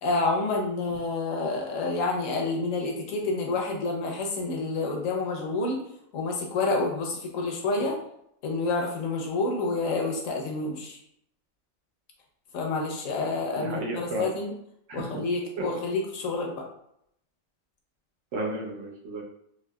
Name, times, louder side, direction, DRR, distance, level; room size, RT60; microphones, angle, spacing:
voice 1, 0.0-5.8 6.1-8.0 8.4-11.0 12.5-14.5 14.9-16.6, left 3 dB, 75° left, 0 dB, 1.1 m, -28 dB
voice 2, 13.2-14.3 14.9-15.2 15.6-15.7 18.3-19.2, right 2 dB, 70° right, 0 dB, 0.9 m, -33 dB
3.6 x 2.7 x 2.2 m, 0.74 s
omnidirectional pair, 1.4 m